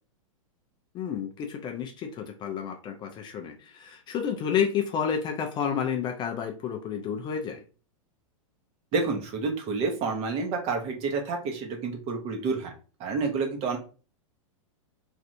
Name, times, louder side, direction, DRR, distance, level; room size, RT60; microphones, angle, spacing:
voice 1, 0.9-7.6, left 7 dB, 25° left, 4 dB, 0.4 m, -30 dB
voice 2, 8.9-12.7 13.0-13.8, right 4 dB, 35° right, 2 dB, 0.9 m, -29 dB
3.2 x 2.6 x 2.6 m, 0.36 s
hypercardioid pair, 125°, 17 cm